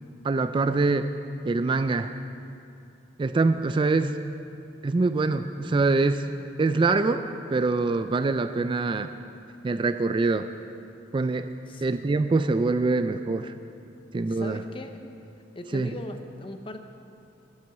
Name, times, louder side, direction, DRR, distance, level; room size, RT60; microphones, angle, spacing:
voice 1, 0.2-1.1 1.4-2.1 3.2-4.2 4.8-6.3 6.6-9.1 9.6-10.5 11.1-11.5 11.8-13.5 14.1-14.6 15.7-15.9, right 3 dB, 30° right, 10 dB, 0.3 m, -24 dB
voice 2, 14.3-15.0 15.5-16.8, left 1 dB, 30° left, 7 dB, 0.8 m, -39 dB
11.0 x 9.9 x 6.9 m, 2.6 s
head